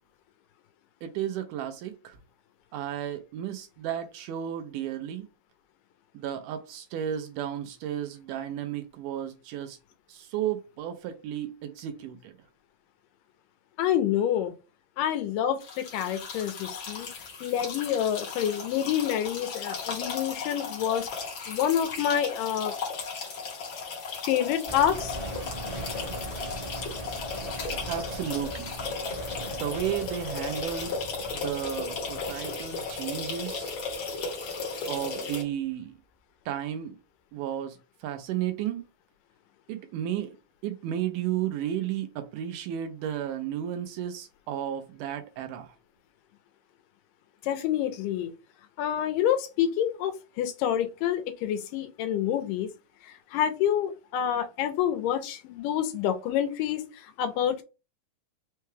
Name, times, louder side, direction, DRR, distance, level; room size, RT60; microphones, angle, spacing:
voice 1, 1.0-2.2 2.7-5.3 6.1-9.8 10.1-12.4 27.9-28.8 29.5-31.0 31.3-33.8 34.8-36.0 36.5-37.0 37.3-38.8 39.7-40.4 40.6-45.8, right 10 dB, 80° right, 2.0 m, -33 dB
voice 2, 13.8-14.5 15.0-17.1 17.4-21.1 21.5-22.7 24.3-25.2 47.4-48.3 48.8-52.7 53.0-57.6, left 10 dB, 85° left, 2.3 m, -27 dB
sound 1, 15.6-35.4, left 4 dB, 60° left, 1.3 m, -35 dB
sound 2, 24.7-34.7 35.0-35.1, right 2 dB, 35° right, 1.0 m, -41 dB
5.6 x 2.2 x 3.2 m
omnidirectional pair, 3.9 m